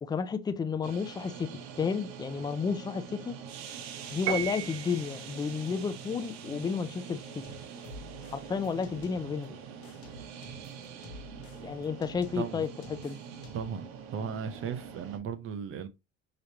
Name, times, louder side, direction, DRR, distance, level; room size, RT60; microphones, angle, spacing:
voice 1, 0.0-1.5 1.8-3.3 4.1-7.6 8.3-9.6 11.6-13.2, left 5 dB, 15° left, 0.3 m, -32 dB
sound 1, 0.8-15.2, right 7 dB, 80° right, 1.1 m, -44 dB
Piano, 4.3-5.2, right 10 dB, 55° right, 1.3 m, -34 dB
sound 2, 7.4-9.5 9.8-13.8, left 2 dB, 85° left, 1.2 m, -50 dB
voice 2, 12.3-12.6 13.5-13.8 14.1-15.9, right 7 dB, 40° right, 0.7 m, -36 dB
5.0 x 3.1 x 2.8 m
cardioid pair, 130°, 34 cm